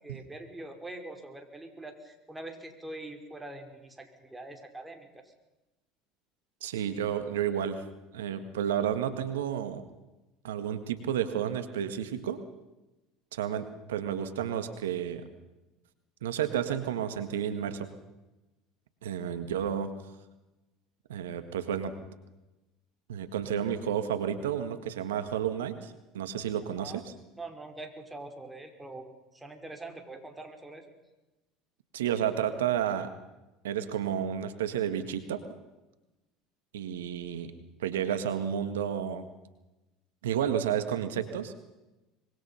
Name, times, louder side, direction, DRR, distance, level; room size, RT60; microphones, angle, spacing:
voice 1, 0.0-5.3 26.8-27.0 27.4-30.9, right 2 dB, 10° right, 4 dB, 5.1 m, -44 dB
voice 2, 6.6-7.8 8.1-9.8 10.4-12.4 13.3-15.3 16.2-17.9 19.0-19.9 21.1-21.9 23.1-27.1 31.9-33.1 33.6-35.4 36.7-37.5 37.8-39.2 40.2-41.5, right 9 dB, 80° right, 10 dB, 1.8 m, -31 dB
25.0 x 22.5 x 5.8 m, 1.0 s
hypercardioid pair, 75°, 0 cm